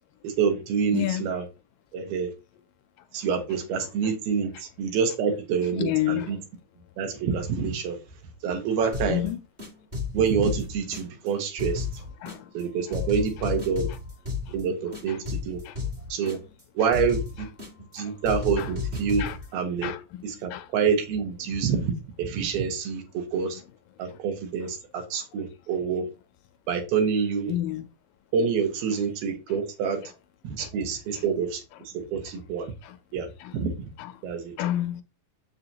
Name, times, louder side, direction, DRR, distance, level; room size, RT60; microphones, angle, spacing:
voice 1, 0.2-1.5 1.9-2.3 3.1-6.4 7.0-8.0 8.4-9.2 10.1-11.9 12.5-13.9 14.5-15.6 16.1-16.4 16.8-17.5 17.9-19.2 19.5-19.9 20.2-23.6 24.0-26.1 26.7-27.5 28.3-30.0 30.4-31.6 31.9-32.7 33.1-33.3 33.5-33.7 34.2-34.5, right 6 dB, 80° right, 3.1 m, -27 dB
voice 2, 3.8-4.1 5.8-6.3 9.1-9.4 12.2-12.5 14.5-14.6 15.1-15.2 15.7-15.8 16.2-16.3 18.0-18.1 18.6-18.7 19.2-19.4 19.8-20.2 20.5-20.7 24.1-24.2 27.5-27.9 30.0-30.1 30.6-30.7 31.1-31.2 32.8-33.0 33.4-33.6 34.0-34.1 34.6-35.0, left 13 dB, 80° left, 2.1 m, -30 dB
sound 1, 8.9-9.3 9.6-11.3 11.6-12.6 12.9-14.6 14.9-16.6 16.9-18.0 18.2-19.5, left 5 dB, 35° right, 0.7 m, -33 dB
7.4 x 6.7 x 2.8 m
omnidirectional pair, 4.3 m